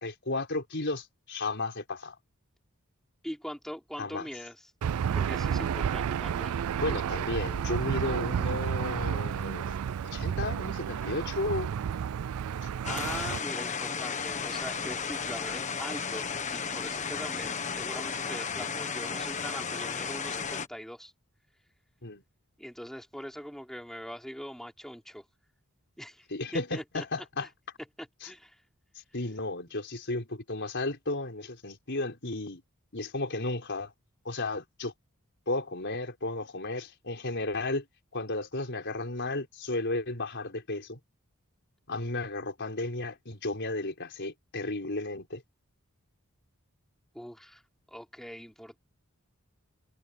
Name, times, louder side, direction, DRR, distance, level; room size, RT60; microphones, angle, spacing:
voice 1, 0.0-2.1 4.0-4.3 6.8-9.8 10.1-11.7 12.6-12.7 22.0-22.2 26.3-27.5 28.2-28.3 29.1-32.6 32.9-33.9 34.2-34.9 35.5-37.8 38.1-41.0 41.9-45.4, left 2 dB, 55° left, 4.9 m, -33 dB
voice 2, 3.2-4.6 5.1-6.6 12.9-21.1 22.6-25.2 26.0-26.3 26.5-27.0 27.4-27.5 28.0-28.6 29.7-29.8 47.1-47.6 47.9-48.8, equal, ahead, 5.5 m, -42 dB
Aircraft / Engine, 4.8-13.4, right 8 dB, 80° right, 0.4 m, -31 dB
sound 1, 12.8-20.7, left 5 dB, 35° left, 1.4 m, -34 dB
head